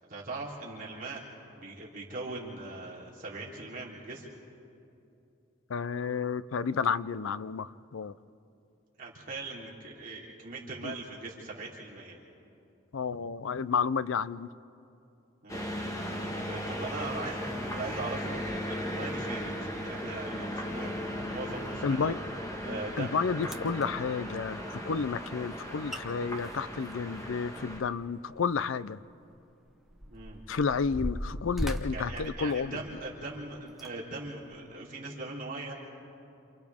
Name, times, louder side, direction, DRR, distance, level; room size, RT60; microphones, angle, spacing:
voice 1, 0.1-1.2 1.5-4.3 9.0-12.2 15.4-15.7 16.0-16.1 16.5-22.2 22.6-23.2 30.0-30.4 31.9-35.7, right 3 dB, 40° right, -4 dB, 3.4 m, -40 dB
voice 2, 5.7-8.1 10.8-10.9 12.9-14.5 21.8-22.2 23.0-29.0 30.5-32.8, left 5 dB, 70° left, 17 dB, 0.5 m, -31 dB
sound 1, 15.5-27.8, equal, 15° left, 1.4 m, -37 dB
sound 2, 23.0-23.1 23.4-23.9 25.6-25.7 25.9-26.0 26.4-28.2 28.5-28.6 29.3-33.1 33.7-33.9 34.5-34.6, equal, ahead, 0.8 m, -38 dB
29.0 x 28.0 x 3.6 m, 2.7 s
head